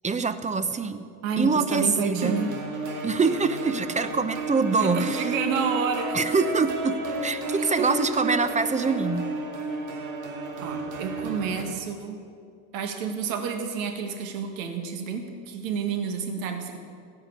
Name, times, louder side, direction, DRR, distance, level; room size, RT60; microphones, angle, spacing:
voice 1, 0.0-1.0 1.4-2.4 3.0-5.3 6.1-9.3, right 4 dB, 15° right, 12 dB, 0.8 m, -25 dB
voice 2, 1.2-2.5 4.8-6.2 7.6-7.9 10.6-12.2 12.7-16.8, right 6 dB, 70° right, 5 dB, 1.8 m, -29 dB
sound 1, 2.2-11.6, right 2 dB, 45° right, 2.2 m, -32 dB
16.0 x 5.9 x 8.2 m, 2.3 s
hypercardioid pair, 75°, 41 cm